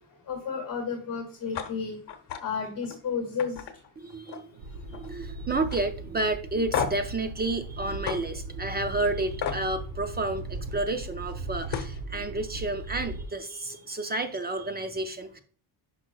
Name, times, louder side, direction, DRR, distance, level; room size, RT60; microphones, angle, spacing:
voice 1, 0.3-2.0 2.4-3.6, left 6 dB, 45° left, 3 dB, 2.1 m, -32 dB
sound 1, 1.5-1.7 2.1-2.4 2.8-3.0 3.4-4.6 4.9-5.3 5.7-5.8 6.7-7.1 8.1-8.2 9.4-9.6 11.3-11.4 11.7-12.0, left 7 dB, 60° left, 1.2 m, -32 dB
voice 2, 4.0-4.6 4.9-15.4, right 2 dB, 20° right, 7 dB, 0.5 m, -31 dB
sound 2, 4.6-13.3, right 2 dB, 70° right, 1.5 m, -38 dB
11.0 x 5.4 x 2.3 m, 0.43 s
cardioid pair, 160°, 48 cm